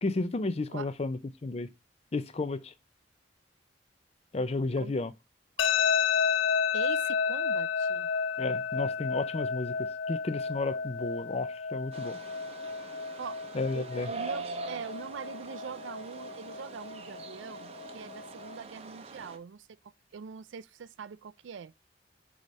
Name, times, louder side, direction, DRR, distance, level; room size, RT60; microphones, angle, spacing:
voice 1, 0.0-1.7 2.1-2.7 4.3-5.1 8.4-12.2 13.5-14.1, left 3 dB, 35° left, 0.4 m, -32 dB
sound 1, 5.6-18.6, left 6 dB, 90° left, 0.5 m, -32 dB
voice 2, 6.7-8.1 13.2-13.4 13.7-19.7 20.1-21.7, right 6 dB, 85° right, 0.4 m, -43 dB
sound 2, 11.9-19.4, right 3 dB, 35° right, 0.6 m, -43 dB
4.9 x 4.0 x 5.4 m
head